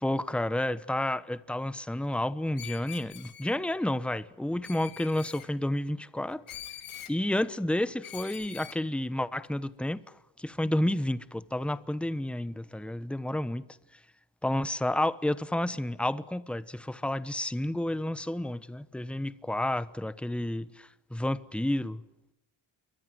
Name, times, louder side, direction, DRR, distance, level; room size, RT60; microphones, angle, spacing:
voice 1, 0.0-6.6 7.1-10.0 10.4-13.6 14.4-22.0, left 1 dB, ahead, 1.0 m, -30 dB
Screech, 2.6-3.6 4.6-5.5 6.5-7.2 8.0-8.8, left 11 dB, 85° left, 2.4 m, -44 dB
29.5 x 23.5 x 7.8 m
cardioid pair, 90°, 48 cm